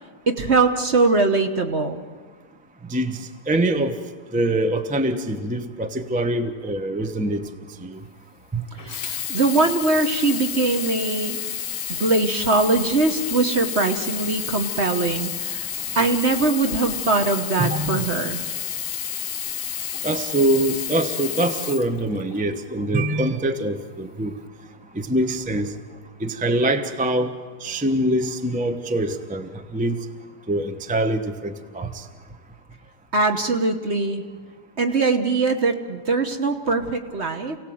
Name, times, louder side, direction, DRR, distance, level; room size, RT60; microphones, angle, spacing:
voice 1, 0.3-2.0 8.8-11.4 11.9-15.7 15.9-18.4 33.1-34.2 34.8-37.6, right 3 dB, 40° right, 6 dB, 1.1 m, -22 dB
voice 2, 3.5-3.9 4.3-7.4 7.8-8.0 8.5-8.6 17.6-18.0 20.0-24.3 24.9-25.7 26.2-27.3 27.6-30.0 30.5-32.0, right 1 dB, 10° right, 7 dB, 0.4 m, -24 dB
Sink (filling or washing), 8.8-22.5 23.3-23.4, left 9 dB, 55° left, 1.1 m, -30 dB
29.0 x 17.5 x 7.8 m, 1.5 s
omnidirectional pair, 2.2 m